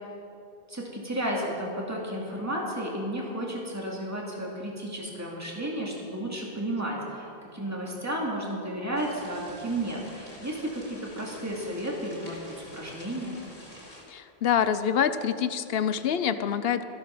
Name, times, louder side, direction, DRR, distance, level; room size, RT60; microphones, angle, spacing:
voice 1, 0.7-7.3 7.5-12.4 12.7-13.4, right 1 dB, 15° right, -3 dB, 2.3 m, -32 dB
sound 1, 8.9-14.0, left 1 dB, 50° left, 3.5 m, -48 dB
voice 2, 14.1-16.8, left 8 dB, 70° left, 12 dB, 0.8 m, -26 dB
13.5 x 12.0 x 5.9 m, 2.7 s
omnidirectional pair, 1.1 m